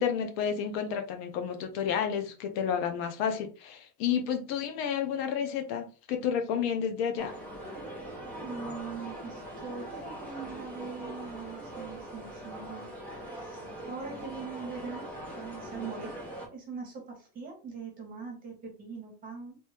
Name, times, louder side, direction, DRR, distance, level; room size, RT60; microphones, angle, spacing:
voice 1, 0.0-7.3, left 7 dB, 60° left, 0.7 m, -31 dB
sound 1, 7.2-16.5, right 1 dB, 5° left, 0.9 m, -41 dB
voice 2, 8.4-12.9 13.4-15.1 15.3-16.2 16.5-19.6, right 5 dB, 25° right, 1.4 m, -42 dB
3.1 x 2.7 x 3.3 m
cardioid pair, 170°, 35 cm